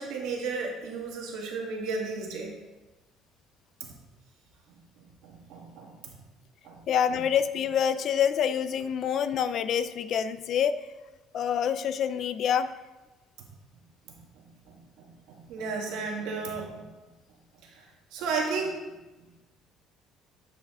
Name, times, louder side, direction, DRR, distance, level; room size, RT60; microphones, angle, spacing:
voice 1, 0.0-2.5 3.8-4.0 5.0-6.2 6.6-6.8 13.4-13.5 14.1-16.9 17.6-17.8 18.1-18.7, right 4 dB, 80° right, 0 dB, 1.5 m, -34 dB
voice 2, 6.9-10.8 11.3-12.7, left 8 dB, 50° left, 13 dB, 0.3 m, -26 dB
8.4 x 4.7 x 3.6 m, 1.1 s
cardioid pair, 140°, 0 cm